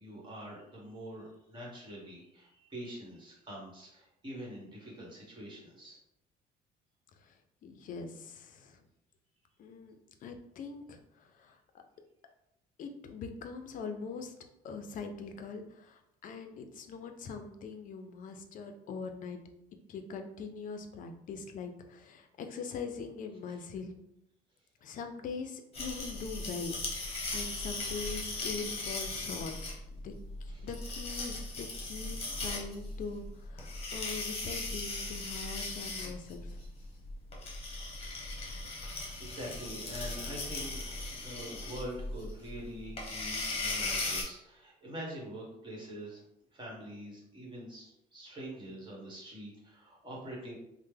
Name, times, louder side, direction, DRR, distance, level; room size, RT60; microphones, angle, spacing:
voice 1, 0.0-6.0 23.5-23.6 30.5-30.7 38.7-46.2 46.5-50.6, equal, 30° right, -3 dB, 1.3 m, -45 dB
voice 2, 7.6-8.8 9.6-11.6 12.8-14.3 14.6-19.4 19.9-23.9 24.8-29.5 29.9-30.1 30.4-36.6, left 5 dB, 55° left, 6 dB, 0.5 m, -42 dB
sound 1, 25.7-44.2, left 2 dB, 35° left, 0.9 m, -38 dB
3.2 x 2.1 x 3.2 m, 0.82 s
cardioid pair, 110°, 17 cm